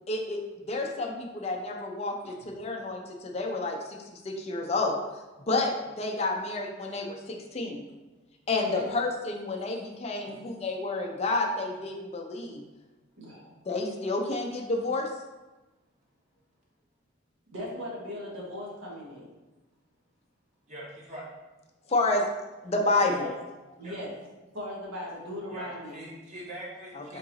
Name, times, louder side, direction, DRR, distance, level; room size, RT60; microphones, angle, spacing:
voice 1, 0.1-5.0 5.5-7.8 8.5-12.6 13.7-15.1 21.9-22.3 22.6-23.3 26.9-27.2, left 2 dB, 35° left, 2 dB, 0.5 m, -30 dB
voice 2, 13.2-13.6 17.5-19.2 23.8-24.1 24.5-26.0, left 1 dB, 80° right, -3 dB, 1.2 m, -38 dB
voice 3, 20.7-21.3 23.0-23.3 23.8-24.0 25.5-27.2, right 1 dB, 35° right, -5 dB, 0.9 m, -42 dB
3.8 x 2.9 x 3.8 m, 1.1 s
head